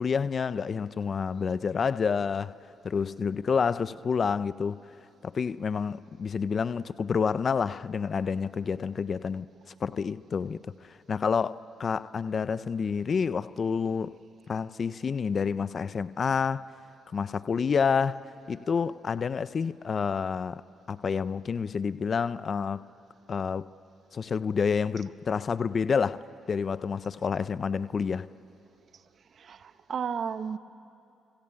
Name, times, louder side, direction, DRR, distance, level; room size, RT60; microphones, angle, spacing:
voice 1, 0.0-2.5 2.8-4.8 5.2-9.5 9.8-14.2 14.5-16.7 17.1-18.2 18.5-20.6 20.9-22.8 23.3-23.7 24.1-26.2 26.5-28.3, left 6 dB, 45° left, 0.6 m, -28 dB
voice 2, 29.3-30.6, right 6 dB, 55° right, 1.0 m, -33 dB
23.5 x 23.5 x 8.8 m
cardioid pair, 90°, 0 cm